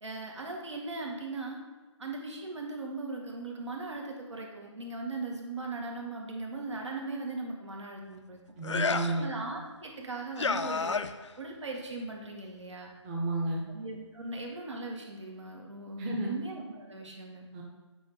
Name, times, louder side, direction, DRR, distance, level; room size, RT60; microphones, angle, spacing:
voice 1, 0.0-1.6 2.0-8.4 9.0-11.0 11.4-12.9 13.7-17.5, right 3 dB, 70° right, 0 dB, 2.1 m, -38 dB
sound 1, 8.6-9.2 10.4-11.3, left 4 dB, 70° left, 0.6 m, -30 dB
voice 2, 8.6-9.3 13.0-13.6 16.0-16.3 17.5-17.6, right 2 dB, 20° right, -3 dB, 1.0 m, -31 dB
9.1 x 4.6 x 5.1 m, 1.3 s
figure-of-eight pair, 150°, 16 cm